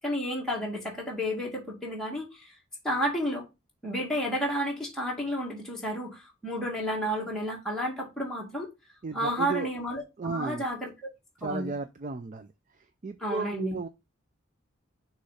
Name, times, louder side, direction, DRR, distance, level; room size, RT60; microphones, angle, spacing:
voice 1, 0.0-2.5 2.8-3.5 3.8-8.7 9.1-10.0 10.3-10.9 11.4-11.7 13.2-13.8, equal, ahead, 1.9 m, -31 dB
voice 2, 9.0-9.7 10.2-10.6 11.4-12.5 13.0-13.9, right 4 dB, 40° right, 0.4 m, -34 dB
6.4 x 3.1 x 5.6 m
head